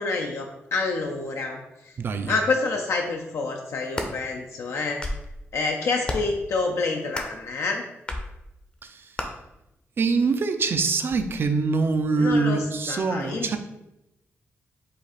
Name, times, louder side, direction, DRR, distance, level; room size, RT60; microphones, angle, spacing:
voice 1, 0.0-2.0 2.3-5.0 5.5-7.8 12.2-13.6, left 3 dB, 75° left, 2 dB, 0.5 m, -28 dB
voice 2, 2.0-2.3 8.8-9.1 10.0-13.6, right 4 dB, 50° right, 8 dB, 0.4 m, -24 dB
sound 1, 3.7-4.1 4.8-5.3 6.0-6.4 7.1-7.4 8.1-8.3 9.2-9.3, left 1 dB, 25° left, 0.6 m, -31 dB
5.0 x 2.5 x 4.1 m, 0.90 s
cardioid pair, 100°, 5 cm